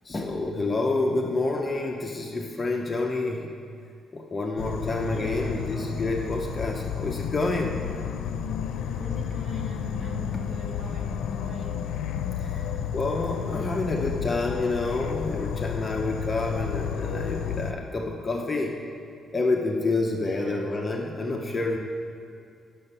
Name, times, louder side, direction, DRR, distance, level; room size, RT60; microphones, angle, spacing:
voice 1, 0.0-3.5 4.1-7.8 12.4-12.7 12.9-18.8 19.3-21.8, left 2 dB, 20° left, 1 dB, 0.6 m, -28 dB
Insect / Frog, 4.6-17.7, left 8 dB, 85° left, 0.5 m, -31 dB
voice 2, 5.1-6.0 8.9-11.8 20.2-20.6, right 1 dB, 35° right, -2 dB, 1.6 m, -43 dB
10.5 x 6.7 x 5.5 m, 2.3 s
cardioid pair, 160°, 0 cm